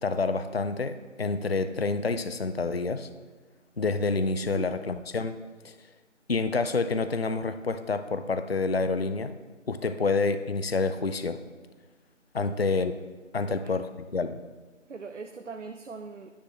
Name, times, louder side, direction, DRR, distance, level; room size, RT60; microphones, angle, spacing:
voice 1, 0.0-3.1 3.8-5.4 5.6-5.8 6.3-9.3 9.7-11.4 12.3-12.9 13.3-14.4, left 3 dB, 55° left, 11 dB, 0.5 m, -28 dB
voice 2, 14.9-16.3, right 4 dB, 70° right, 6 dB, 0.7 m, -41 dB
10.0 x 9.7 x 3.0 m, 1.3 s
figure-of-eight pair, 165°, 38 cm